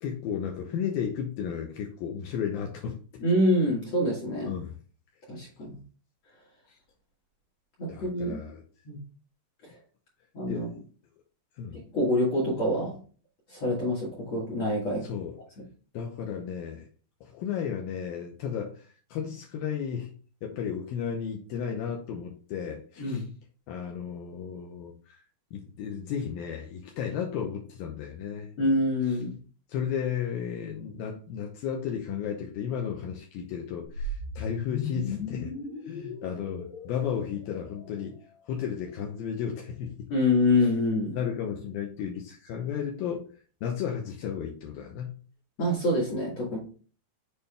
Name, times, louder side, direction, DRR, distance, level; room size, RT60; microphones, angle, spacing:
voice 1, 0.0-3.2 4.5-4.7 6.7-6.8 7.9-8.6 10.5-10.7 11.6-11.8 15.0-15.4 15.9-16.9 17.2-20.1 20.4-23.2 23.7-25.2 25.5-28.5 29.1-29.2 29.7-35.5 35.9-38.2 38.5-40.1 40.6-40.7 41.1-43.3 43.6-45.2, left 8 dB, 90° left, 1 dB, 2.0 m, -34 dB
voice 2, 3.2-4.5 5.3-5.8 7.8-8.4 8.9-9.0 10.3-10.7 11.9-13.0 13.5-15.1 23.0-23.3 28.6-29.3 40.1-41.2 45.6-46.6, left 1 dB, 55° left, -3 dB, 2.0 m, -26 dB
sound 1, 33.9-38.2, left 3 dB, 70° left, 2.7 m, -37 dB
7.1 x 4.4 x 3.4 m, 0.40 s
omnidirectional pair, 5.3 m